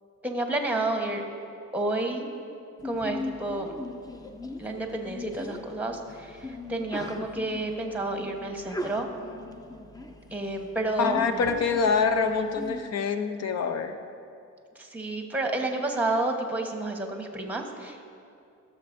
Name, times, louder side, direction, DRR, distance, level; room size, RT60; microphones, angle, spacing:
voice 1, 0.2-1.2 1.7-2.3 2.8-3.7 4.6-9.1 10.3-11.5 14.7-18.1, right 2 dB, 5° right, 3 dB, 1.1 m, -30 dB
Sneeze, 2.8-12.8, left 2 dB, 10° left, 0.6 m, -39 dB
voice 2, 11.0-14.0, left 5 dB, 55° left, 7 dB, 0.7 m, -25 dB
14.5 x 6.8 x 2.6 m, 2.5 s
cardioid pair, 90°, 30 cm